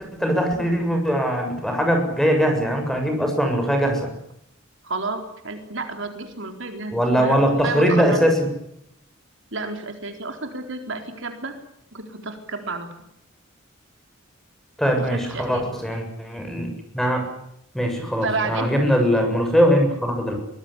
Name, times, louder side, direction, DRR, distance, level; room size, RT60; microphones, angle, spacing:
voice 1, 0.1-4.1 6.9-8.5 14.8-16.7 16.9-17.2 17.7-20.3, equal, ahead, 3 dB, 7.3 m, -21 dB
voice 2, 4.8-8.2 9.5-11.5 11.9-12.9 15.0-15.6 18.2-18.7, right 3 dB, 60° right, 6 dB, 4.1 m, -31 dB
24.0 x 19.5 x 10.0 m, 0.76 s
head